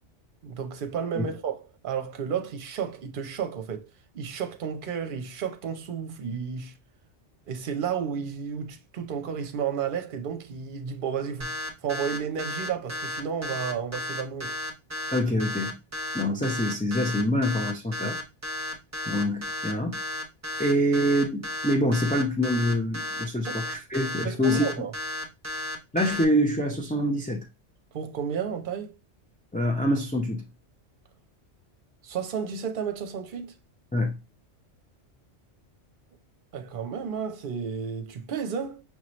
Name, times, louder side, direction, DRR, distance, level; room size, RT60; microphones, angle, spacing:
voice 1, 0.4-3.9 4.1-6.8 7.5-11.5 11.8-14.6 20.5-20.7 24.2-24.9 27.9-28.9 32.0-33.6 36.5-38.8, right 7 dB, 50° right, 0.8 m, -32 dB
sound 1, 11.4-26.2, left 1 dB, 15° right, 0.9 m, -33 dB
voice 2, 15.1-15.8 16.1-18.2 19.1-20.0 20.6-24.7 25.9-27.5 29.5-30.4 33.9-34.2, equal, 15° left, 0.3 m, -25 dB
6.0 x 2.9 x 3.0 m
omnidirectional pair, 1.2 m